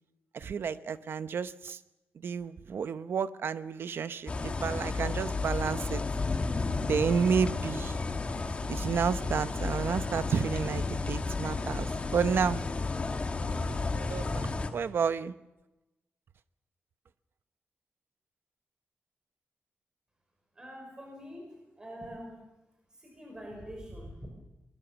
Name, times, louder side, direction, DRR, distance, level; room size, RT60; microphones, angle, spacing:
voice 1, 0.3-1.8 2.1-6.1 6.9-8.0 8.7-12.6 14.1-15.3, right 6 dB, 65° right, 13 dB, 0.8 m, -31 dB
sound 1, 4.3-14.7, left 3 dB, 30° left, 1.8 m, -32 dB
voice 2, 20.6-22.3 22.9-24.3, equal, 20° right, 1 dB, 5.5 m, -44 dB
22.5 x 20.5 x 7.0 m, 1.0 s
wide cardioid pair, 170°, 4 cm